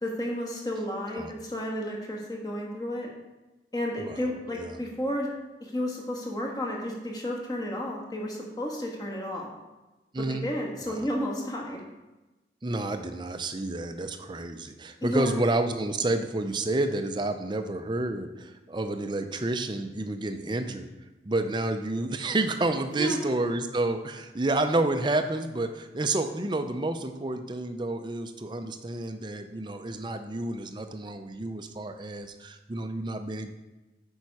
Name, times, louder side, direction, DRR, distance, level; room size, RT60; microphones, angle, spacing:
voice 1, 0.0-3.1 3.7-5.3 5.6-9.5 10.2-11.8 15.0-15.4 23.0-23.2, left 1 dB, 20° left, -1 dB, 1.4 m, -32 dB
voice 2, 10.1-10.4 10.9-11.0 12.6-20.9 21.2-33.5, right 2 dB, 25° right, 7 dB, 0.5 m, -30 dB
8.6 x 5.4 x 4.7 m, 1.1 s
head